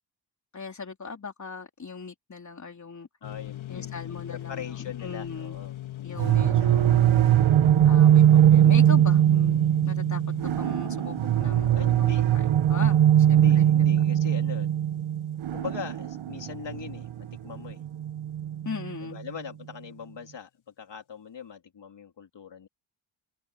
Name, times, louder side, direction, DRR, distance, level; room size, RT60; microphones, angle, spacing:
voice 1, 0.5-3.1 3.7-5.6 6.0-7.0 7.8-9.6 9.8-10.2 10.6-11.7 12.0-12.1 12.3-13.0 13.3-13.7 18.6-19.2, left 5 dB, 35° left, 3.4 m, -39 dB
sound 1, 3.2-16.7, left 15 dB, 80° left, 2.7 m, -42 dB
voice 2, 3.2-6.8 11.7-12.3 13.2-14.8 15.5-17.8 19.0-20.5 20.8-22.7, left 7 dB, 65° left, 2.8 m, -41 dB
sound 2, 6.2-18.9, right 10 dB, 80° right, 1.2 m, -21 dB
open air
wide cardioid pair, 100°, 47 cm